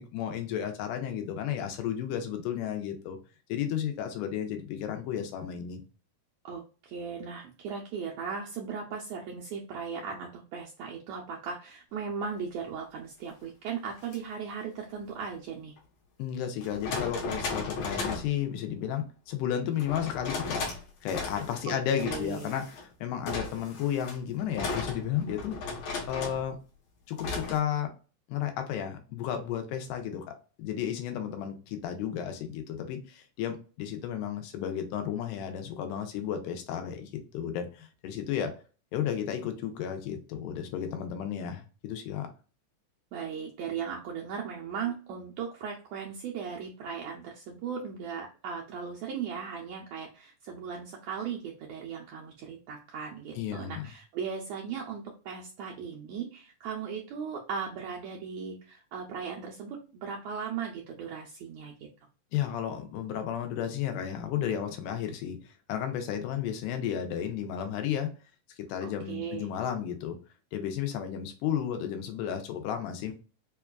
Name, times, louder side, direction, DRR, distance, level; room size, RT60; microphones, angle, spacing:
voice 1, 0.0-3.2 3.5-5.8 16.2-20.7 21.0-22.7 23.0-25.6 26.1-26.6 27.1-27.9 28.3-38.5 38.9-42.3 53.4-53.8 62.3-68.1 68.6-70.2 70.5-73.1, left 9 dB, 85° left, 6 dB, 2.2 m, -33 dB
voice 2, 6.4-15.7 21.7-21.8 22.0-22.5 43.1-61.9 68.8-69.5, right 6 dB, 80° right, -1 dB, 1.6 m, -37 dB
sound 1, 14.0-14.2 15.8-15.9 16.6-18.3 19.8-20.8 21.1-21.6 22.0-22.8 23.3-26.5 27.2-27.6, left 3 dB, 65° left, 1.9 m, -35 dB
5.1 x 2.3 x 2.2 m, 0.36 s
omnidirectional pair, 3.7 m